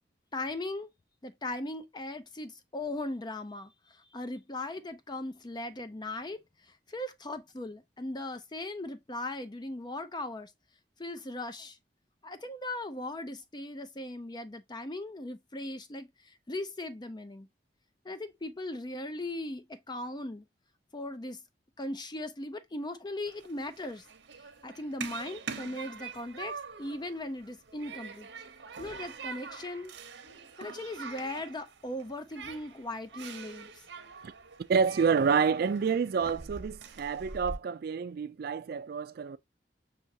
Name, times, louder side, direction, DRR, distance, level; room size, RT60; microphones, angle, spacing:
voice 1, 0.3-0.9 1.2-10.5 11.0-11.8 12.2-17.5 18.0-20.4 20.9-21.4 21.8-24.1 24.6-28.3 28.8-29.9 30.6-33.8, left 1 dB, 25° left, 0.5 m, -38 dB
Human group actions, 23.3-37.6, right 5 dB, 85° right, 0.8 m, -44 dB
voice 2, 34.7-39.4, right 6 dB, 60° right, 0.4 m, -28 dB
5.8 x 2.9 x 2.7 m
head